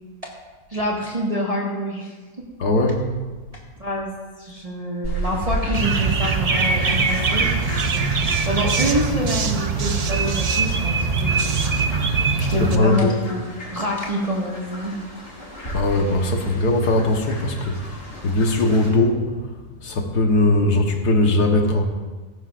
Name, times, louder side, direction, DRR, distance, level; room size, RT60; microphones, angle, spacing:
voice 1, 0.7-2.4 3.8-4.1 4.4-7.7 8.4-11.6 12.4-15.0, equal, 25° right, -4 dB, 1.7 m, -26 dB
voice 2, 2.6-3.1 12.4-13.2 15.7-21.8, left 2 dB, 85° left, 2 dB, 1.7 m, -20 dB
Fowl, 5.0-18.9, equal, 45° left, 4.8 m, -34 dB
sound 1, 5.7-12.8, right 4 dB, 70° right, 0.3 m, -22 dB
17.0 x 14.5 x 2.5 m, 1.3 s
omnidirectional pair, 1.7 m